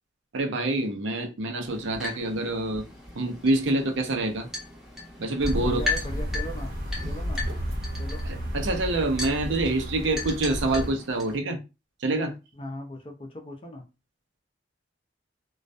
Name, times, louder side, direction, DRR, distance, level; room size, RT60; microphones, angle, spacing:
voice 1, 0.3-2.8 3.2-4.5 5.2-5.8 8.2-11.6 12.0-12.4, right 2 dB, 90° right, 0.6 m, -26 dB
sound 1, 1.6-11.4, left 3 dB, ahead, 0.8 m, -37 dB
sound 2, 5.4-10.9, equal, 55° right, 1.1 m, -32 dB
voice 2, 5.5-6.7 7.0-7.5 8.0-8.2 12.6-13.9, equal, 30° left, 0.5 m, -38 dB
2.3 x 2.1 x 2.5 m
head